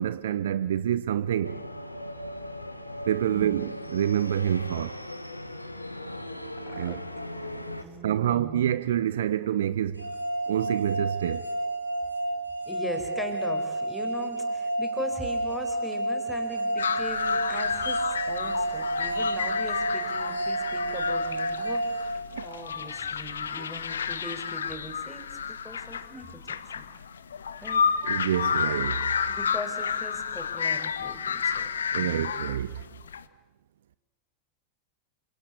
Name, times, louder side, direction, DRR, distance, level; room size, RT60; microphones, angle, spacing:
voice 1, 0.0-1.6 3.1-5.0 6.7-7.0 8.0-10.0 10.5-11.4 22.3-22.4 28.0-29.1 31.9-32.7, right 10 dB, 60° right, 0.8 m, -27 dB
sound 1, 1.4-7.8, left 1 dB, 85° left, 1.7 m, -38 dB
voice 2, 6.7-7.0 7.4-8.7 12.7-22.1 22.4-26.8 27.6-27.8 29.3-31.7 32.0-32.3, left 1 dB, 5° left, 5.2 m, -40 dB
sound 2, 10.0-22.9, right 1 dB, 85° right, 3.8 m, -30 dB
sound 3, 16.8-33.2, left 7 dB, 70° left, 1.1 m, -31 dB
27.5 x 26.5 x 6.8 m
figure-of-eight pair, 90°, 0 cm